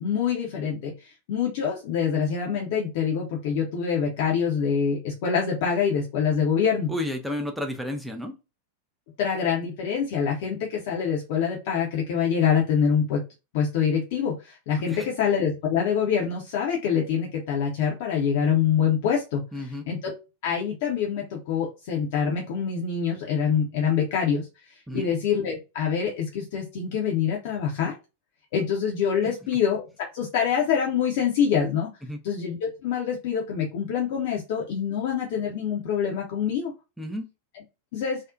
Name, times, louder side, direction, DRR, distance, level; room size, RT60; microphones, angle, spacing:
voice 1, 0.0-6.9 9.2-13.2 13.5-20.1 20.4-24.5 24.9-27.9 28.5-29.8 30.1-31.9 32.2-36.7 37.9-38.2, left 7 dB, 50° left, 0.5 m, -25 dB
voice 2, 6.9-8.3 14.9-15.1 19.5-19.8 24.9-25.1 29.2-29.3 32.1-32.2 37.0-37.3, left 1 dB, ahead, 0.4 m, -31 dB
2.5 x 2.0 x 2.4 m
figure-of-eight pair, 90°, 0 cm